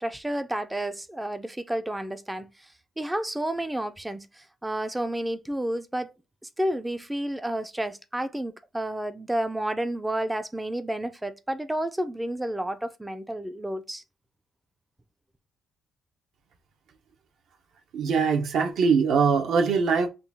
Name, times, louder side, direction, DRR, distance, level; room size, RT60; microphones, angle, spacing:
voice 1, 0.0-2.5 3.0-4.3 4.6-6.1 6.6-14.0, right 1 dB, 5° right, 0.3 m, -30 dB
voice 2, 17.9-20.1, right 5 dB, 65° right, 0.6 m, -22 dB
3.7 x 2.3 x 3.3 m
cardioid pair, 155°, 0 cm